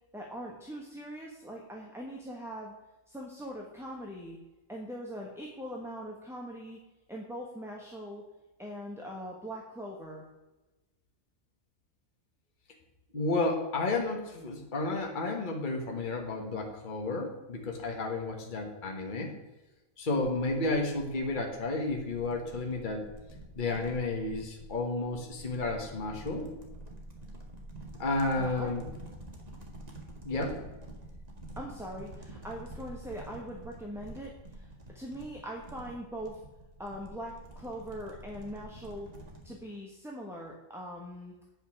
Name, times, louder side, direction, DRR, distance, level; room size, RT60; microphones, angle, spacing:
voice 1, 0.1-2.7 3.1-4.4 4.7-6.8 7.1-8.2 8.6-10.2 28.4-28.7 31.6-36.4 36.8-39.1 39.4-41.3, equal, ahead, -1 dB, 1.1 m, -41 dB
voice 2, 13.1-19.3 20.0-23.0 23.6-26.5 28.0-28.8 30.2-30.6, left 2 dB, 35° left, 1 dB, 1.5 m, -32 dB
sound 1, 20.2-39.5, right 1 dB, 30° right, 1.9 m, -48 dB
9.1 x 5.6 x 7.1 m, 1.1 s
omnidirectional pair, 1.4 m